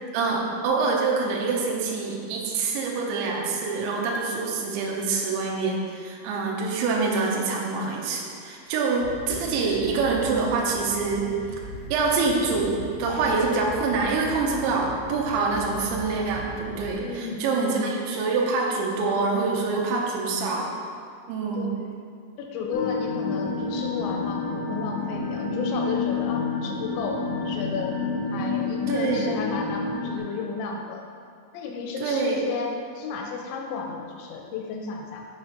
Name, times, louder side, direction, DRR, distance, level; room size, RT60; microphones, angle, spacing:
voice 1, 0.1-11.3 11.9-20.7 21.3-21.7 28.9-29.3 32.0-32.4, right 4 dB, 85° right, -2 dB, 3.1 m, -25 dB
sound 1, 9.0-16.9, equal, 50° right, 2.7 m, -40 dB
voice 2, 17.0-17.9 21.6-21.7 22.4-28.0 28.3-31.0 31.5-32.7 33.0-35.3, left 5 dB, 85° left, 1 dB, 3.0 m, -33 dB
sound 2, 22.7-30.2, left 4 dB, 70° left, 2.3 m, -29 dB
7.9 x 5.8 x 3.9 m, 2.3 s
omnidirectional pair, 5.4 m